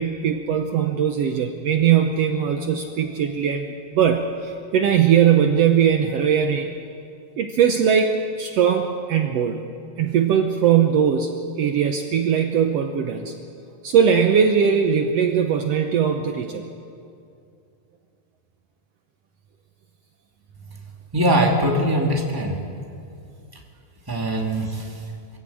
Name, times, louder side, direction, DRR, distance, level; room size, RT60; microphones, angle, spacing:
voice 1, 0.0-6.8 7.4-9.6 10.0-11.3 11.6-13.3 13.8-16.7, right 8 dB, 70° right, 5 dB, 1.9 m, -20 dB
voice 2, 21.1-22.6 24.1-24.8, right 1 dB, 10° right, 0 dB, 2.2 m, -21 dB
24.0 x 15.0 x 8.6 m, 2.4 s
omnidirectional pair, 3.3 m